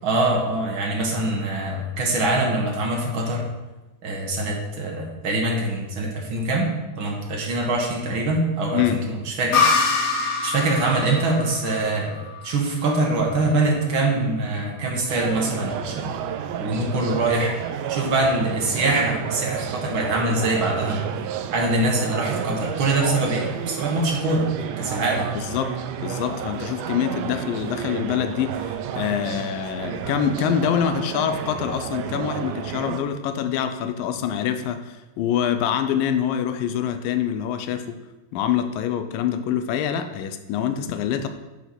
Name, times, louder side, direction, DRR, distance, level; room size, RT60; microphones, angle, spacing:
voice 1, 0.0-3.5 4.0-6.7 7.0-10.1 10.4-16.2 16.6-17.5 17.9-21.0 21.5-24.5 24.8-25.3, right 2 dB, 55° right, -1 dB, 1.5 m, -24 dB
voice 2, 8.7-9.1 25.4-25.8 26.0-38.0 38.3-41.3, left 9 dB, 80° left, 9 dB, 2.4 m, -25 dB
sound 1, 9.5-13.1, left 4 dB, 60° left, 2.4 m, -24 dB
sound 2, 15.1-33.0, right 9 dB, 80° right, 1.9 m, -31 dB
9.9 x 4.7 x 5.9 m, 1.1 s
omnidirectional pair, 4.0 m